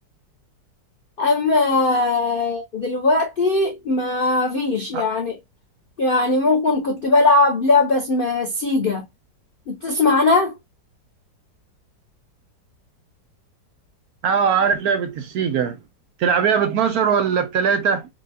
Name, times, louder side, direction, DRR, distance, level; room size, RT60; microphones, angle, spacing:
voice 1, 1.2-5.4 6.0-9.0 9.7-10.5, left 3 dB, 75° left, 0.5 m, -19 dB
voice 2, 14.2-15.8 16.2-18.1, right 6 dB, 70° right, 1.0 m, -20 dB
4.6 x 2.2 x 2.6 m
omnidirectional pair, 1.9 m